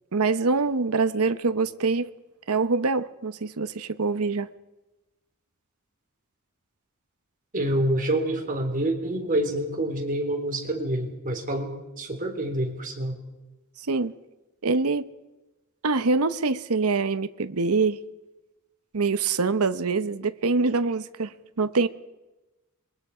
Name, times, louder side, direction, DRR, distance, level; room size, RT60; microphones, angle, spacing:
voice 1, 0.1-2.1 2.5-4.5 13.8-14.1 14.6-15.1 15.8-18.0 18.9-21.9, right 4 dB, 80° right, 0.9 m, -24 dB
voice 2, 7.5-11.7 12.0-13.2, right 1 dB, 40° right, 4.0 m, -27 dB
26.5 x 22.5 x 5.0 m
head